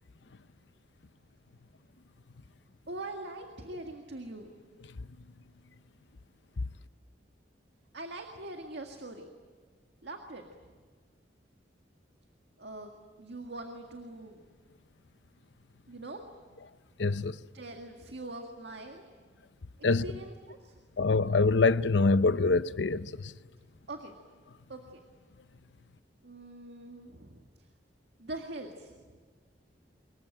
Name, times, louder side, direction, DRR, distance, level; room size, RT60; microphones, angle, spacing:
voice 1, 2.9-4.5 7.9-9.3 10.0-10.4 12.6-14.4 15.9-16.2 17.5-19.0 19.9-20.7 23.9-24.1 24.7-25.0 26.2-27.5 28.2-29.2, right 2 dB, 65° right, 1.9 m, -43 dB
voice 2, 17.0-17.4 19.8-20.0 21.0-23.3, left 3 dB, 75° left, 0.7 m, -25 dB
25.0 x 22.5 x 9.0 m
head